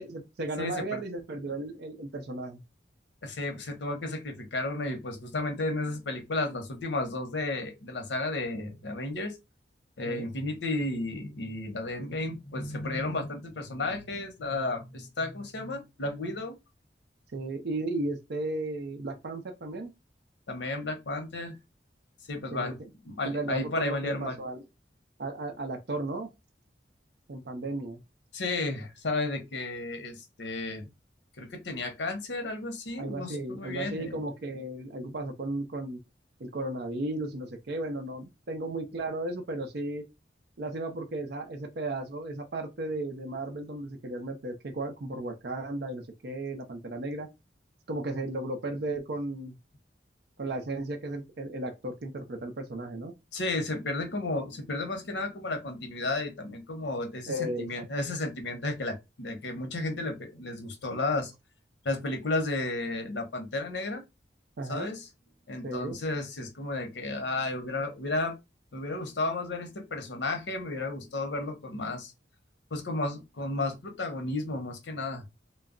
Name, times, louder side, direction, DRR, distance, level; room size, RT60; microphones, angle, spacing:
voice 1, 0.0-2.6 10.0-10.3 12.8-13.1 17.3-19.9 22.5-22.7 23.2-24.6 25.2-26.3 27.3-28.0 33.0-36.0 36.4-40.0 40.6-47.3 47.9-49.6 50.4-53.1 57.3-57.9 64.6-64.9 65.6-66.0, right 2 dB, 65° right, 0.5 m, -35 dB
voice 2, 0.6-1.0 3.2-9.3 10.0-16.5 20.5-21.6 22.3-22.8 23.0-24.4 28.3-30.8 31.4-34.2 53.3-61.3 61.8-64.0 64.7-65.1 65.5-68.4 68.7-72.1 72.7-75.2, left 2 dB, 80° left, 0.7 m, -33 dB
2.2 x 2.0 x 3.6 m
head